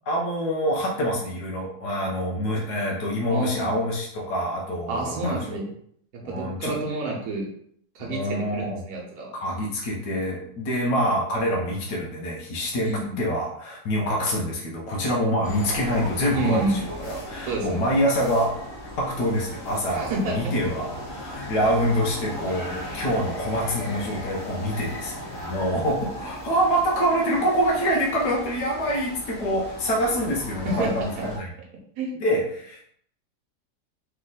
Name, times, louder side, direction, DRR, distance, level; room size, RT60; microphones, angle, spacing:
voice 1, 0.1-5.6 6.2-6.7 8.1-8.8 9.4-12.9 13.2-16.8 17.1-18.6 19.0-31.5 32.2-32.8, equal, 85° left, -3 dB, 1.5 m, -26 dB
voice 2, 3.3-3.7 4.9-5.6 6.2-7.5 7.9-9.3 12.8-13.2 16.3-16.8 17.5-17.9 19.9-20.5 26.1-26.2 30.6-31.2 32.0-32.1, right 2 dB, 70° right, -2 dB, 1.4 m, -29 dB
sound 1, 15.4-31.4, left 1 dB, 45° left, 1.3 m, -37 dB
3.6 x 3.3 x 3.9 m, 0.67 s
omnidirectional pair, 1.7 m